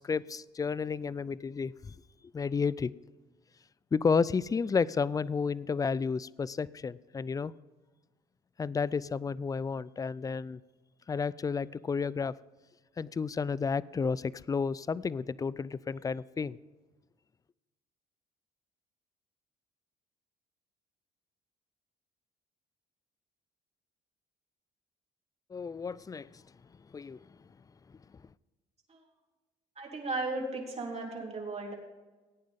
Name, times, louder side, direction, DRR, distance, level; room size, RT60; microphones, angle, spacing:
voice 1, 0.0-1.9 2.3-2.9 3.9-7.5 8.6-10.6 11.1-12.4 13.0-16.6 25.5-26.4 26.9-27.2, left 5 dB, 20° left, 21 dB, 0.4 m, -31 dB
voice 2, 29.7-31.7, right 3 dB, 35° right, 0 dB, 3.5 m, -35 dB
16.5 x 9.2 x 3.6 m, 1.2 s
supercardioid pair, 80°, 18 cm